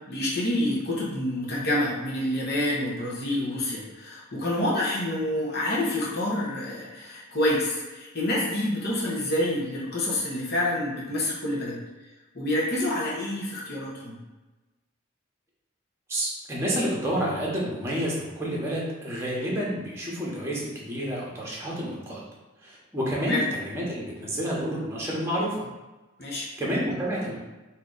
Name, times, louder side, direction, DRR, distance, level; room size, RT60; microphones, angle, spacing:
voice 1, 0.1-11.8 12.3-14.1 23.2-23.4 26.2-26.5, left 1 dB, 50° left, -5 dB, 1.1 m, -27 dB
voice 2, 16.1-22.2 22.6-25.6 26.3-27.4, equal, 10° right, -5 dB, 1.1 m, -29 dB
4.8 x 2.8 x 3.9 m, 1.1 s
head